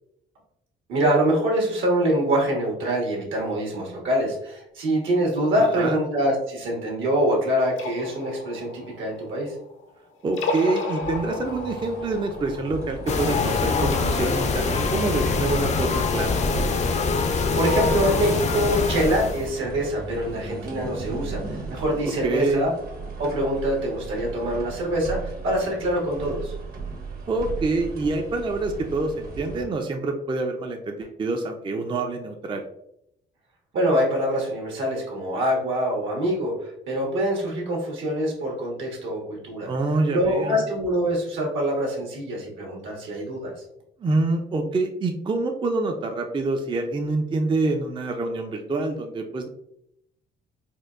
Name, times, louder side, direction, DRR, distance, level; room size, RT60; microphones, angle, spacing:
voice 1, 0.9-9.5 17.5-22.7 23.2-26.5 33.7-39.7 40.1-43.5, equal, 75° right, -1 dB, 1.3 m, -25 dB
voice 2, 5.6-6.0 10.2-16.4 22.2-22.6 27.3-32.6 39.6-40.6 44.0-49.5, right 3 dB, 25° right, 4 dB, 0.4 m, -26 dB
sound 1, 7.6-9.8 10.2-14.0, left 3 dB, 75° left, 0.6 m, -34 dB
sound 2, 11.0-29.6, right 4 dB, 50° right, 0.8 m, -37 dB
sound 3, 13.1-19.5, left 4 dB, 35° left, 0.4 m, -24 dB
4.3 x 2.2 x 2.4 m, 0.79 s
cardioid pair, 90°, 20 cm